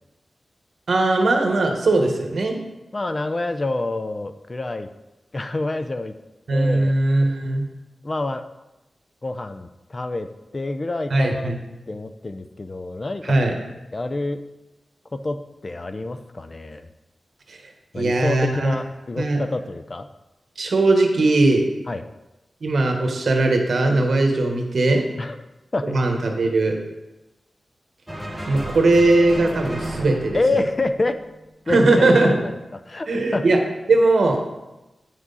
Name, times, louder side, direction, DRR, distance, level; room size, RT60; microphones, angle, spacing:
voice 1, 0.9-2.6 6.5-7.6 11.1-11.6 13.2-13.5 17.5-17.6 17.9-18.7 19.2-19.4 20.6-21.7 22.6-25.0 25.8-26.8 28.5-30.4 31.7-32.4 33.1-33.6 33.9-34.4, right 2 dB, 65° right, 3 dB, 1.3 m, -19 dB
voice 2, 2.9-4.9 5.3-6.1 6.5-6.9 8.0-8.4 9.2-10.3 10.5-11.5 11.9-13.3 13.9-14.4 15.1-15.4 15.6-16.9 17.9-20.1 21.9-22.0 25.2-25.4 25.7-26.0 30.3-31.2 31.7-32.6 32.9-33.4, left 2 dB, 30° left, 9 dB, 0.4 m, -27 dB
sound 1, 28.1-31.6, right 1 dB, 5° right, 1.3 m, -33 dB
9.2 x 6.1 x 4.1 m, 1.0 s
wide cardioid pair, 120°, 0 cm